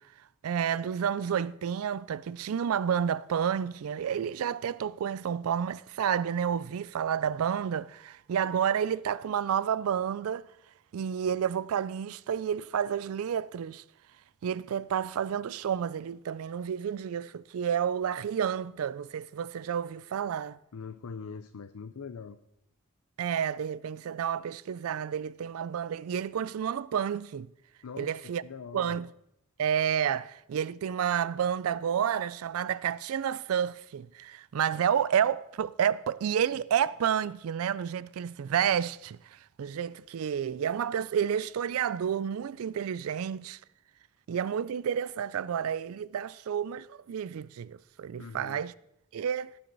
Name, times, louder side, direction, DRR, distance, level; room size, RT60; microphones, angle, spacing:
voice 1, 0.4-10.4 10.9-13.8 14.4-20.6 23.2-27.5 28.0-28.4 28.7-29.1 29.6-39.2 39.6-43.6 44.3-48.7 49.1-49.5, right 8 dB, 80° right, 0.4 m, -30 dB
voice 2, 20.7-22.4 27.8-29.0 48.2-48.6, left 5 dB, 85° left, 0.5 m, -42 dB
17.0 x 7.7 x 4.0 m
head